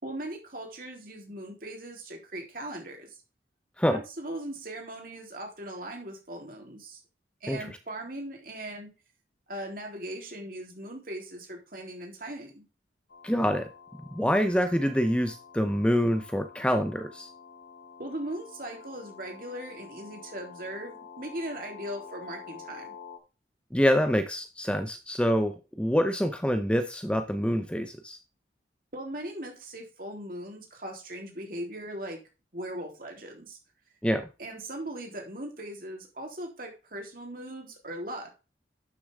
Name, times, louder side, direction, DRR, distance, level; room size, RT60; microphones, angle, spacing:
voice 1, 0.0-3.2 3.9-7.0 7.4-8.9 9.5-12.7 18.0-23.0 28.9-32.2 32.5-33.6 34.4-38.3, right 1 dB, 50° right, 2 dB, 3.6 m, -39 dB
sound 1, 13.1-23.2, left 6 dB, 80° left, 1.9 m, -48 dB
voice 2, 13.2-13.7 14.1-17.3 23.7-28.2 34.0-34.3, equal, 5° left, 8 dB, 0.7 m, -26 dB
12.0 x 6.9 x 3.6 m, 0.30 s
head